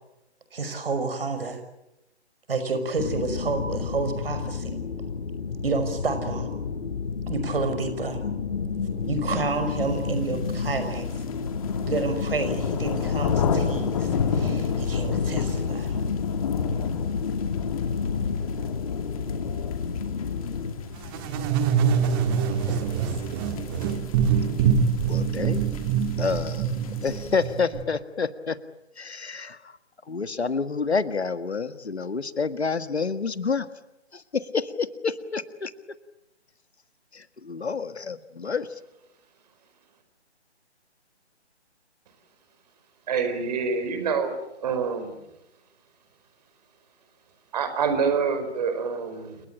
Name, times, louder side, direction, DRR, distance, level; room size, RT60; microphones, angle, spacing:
voice 1, 0.5-1.6 2.5-4.8 5.6-6.5 7.3-8.2 9.1-11.1 11.8-16.0 22.7-23.1, right 3 dB, 55° right, 9 dB, 5.9 m, -30 dB
sound 1, 3.0-20.7, left 5 dB, 50° left, 5.1 m, -31 dB
sound 2, 10.0-27.5, left 6 dB, 30° left, 2.6 m, -31 dB
sound 3, 21.0-27.8, right 7 dB, 20° right, 1.7 m, -25 dB
voice 2, 25.1-25.6 26.2-26.8 27.0-28.6 29.0-29.7 30.1-33.7 34.1-35.7 37.1-38.7, left 5 dB, 70° left, 12 dB, 1.8 m, -28 dB
voice 3, 43.1-44.4 44.6-45.1 47.5-49.4, right 5 dB, 35° right, 9 dB, 4.8 m, -26 dB
30.0 x 19.0 x 9.0 m, 0.90 s
figure-of-eight pair, 140°, 34 cm